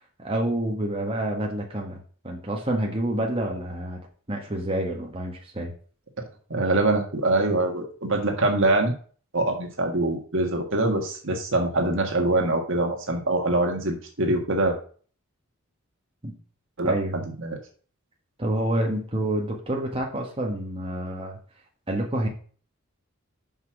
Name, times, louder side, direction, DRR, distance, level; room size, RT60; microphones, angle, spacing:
voice 1, 0.2-2.0 2.2-4.0 4.3-5.7 16.2-16.3 16.8-17.2 18.4-21.4 21.9-22.3, right 1 dB, 25° right, 0 dB, 1.5 m, -28 dB
voice 2, 6.5-8.9 9.3-14.8 16.8-16.9 17.4-17.6, right 2 dB, 60° right, 3 dB, 1.7 m, -24 dB
6.1 x 5.6 x 5.9 m, 0.42 s
head